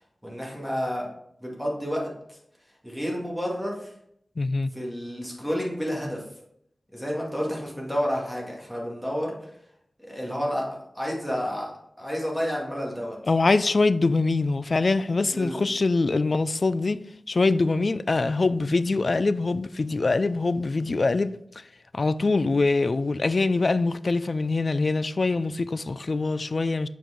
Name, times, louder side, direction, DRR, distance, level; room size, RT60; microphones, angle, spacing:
voice 1, 0.2-1.1 1.4-2.4 2.8-3.9 4.7-6.2 6.9-9.5 10.0-11.7 12.0-13.2 15.3-15.7, equal, ahead, 2.1 m, -30 dB
voice 2, 4.4-4.7 13.3-21.7 21.9-26.9, left 3 dB, 55° left, 0.3 m, -24 dB
7.0 x 4.6 x 3.7 m
wide cardioid pair, 95°, 0 cm